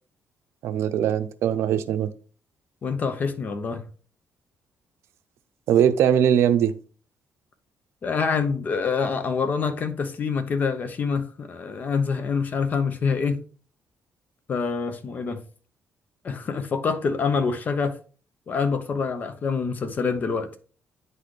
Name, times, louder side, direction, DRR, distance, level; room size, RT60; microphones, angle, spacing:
voice 1, 0.6-2.1 5.7-6.7, right 9 dB, 80° right, 0.6 m, -21 dB
voice 2, 2.8-3.9 8.0-13.4 14.5-15.4 16.2-18.0 18.5-20.6, left 5 dB, 40° left, 0.8 m, -26 dB
9.1 x 4.1 x 3.3 m
cardioid pair, 145°, 5 cm